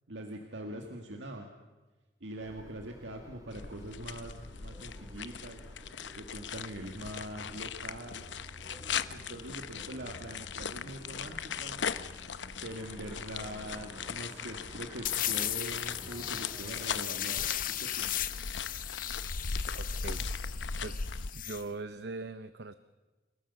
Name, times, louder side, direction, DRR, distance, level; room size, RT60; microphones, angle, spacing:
voice 1, 0.1-1.5 2.2-5.6 6.2-8.3 9.1-11.8 12.6-17.5 17.8-18.1, right 1 dB, 90° right, 2 dB, 2.0 m, -43 dB
sound 1, 2.4-17.2, equal, 20° right, 2.5 m, -52 dB
sound 2, 3.5-21.3, left 6 dB, 80° left, 0.8 m, -39 dB
sound 3, 15.0-21.6, left 12 dB, 50° left, 0.8 m, -37 dB
voice 2, 19.7-20.3 20.8-21.0 21.3-22.7, right 3 dB, 65° right, 12 dB, 0.7 m, -41 dB
29.0 x 17.5 x 7.0 m, 1.2 s
head